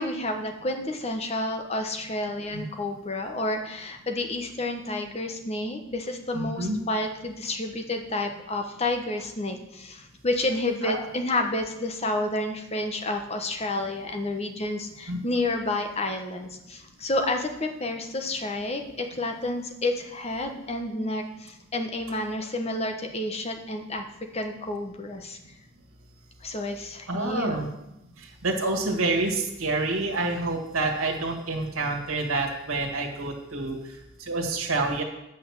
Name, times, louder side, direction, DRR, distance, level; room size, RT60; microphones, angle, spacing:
voice 1, 0.0-24.0 24.3-25.4 26.4-27.6, left 2 dB, 30° left, 4 dB, 1.0 m, -30 dB
voice 2, 6.3-6.8 10.8-11.0 15.1-15.2 27.1-27.7 28.4-33.8 34.3-35.0, right 2 dB, 90° right, 1 dB, 1.7 m, -27 dB
8.8 x 6.0 x 7.3 m, 0.88 s
head